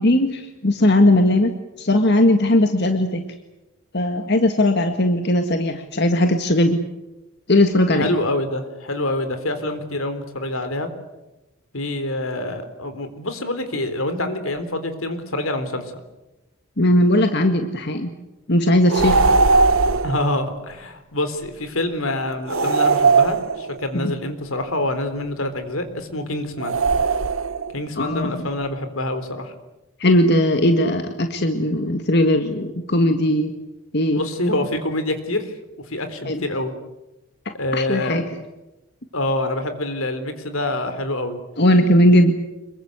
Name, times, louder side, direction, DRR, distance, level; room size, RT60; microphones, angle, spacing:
voice 1, 0.0-1.5 1.8-3.3 3.9-6.8 7.5-8.1 16.8-18.1 18.5-19.2 23.9-24.1 28.0-28.5 30.0-33.5 33.9-34.2 36.3-36.4 37.7-38.2 41.6-42.3, left 1 dB, 55° left, 6 dB, 1.9 m, -18 dB
voice 2, 7.9-10.9 11.7-15.9 20.0-26.8 27.7-29.5 34.1-35.5 35.9-36.7 37.5-38.2 39.1-41.4, left 1 dB, 85° left, 10 dB, 3.9 m, -26 dB
sound 1, 18.9-20.2 22.5-23.9 26.6-27.7, right 4 dB, 80° right, 1.2 m, -18 dB
26.5 x 23.0 x 8.2 m, 0.98 s
head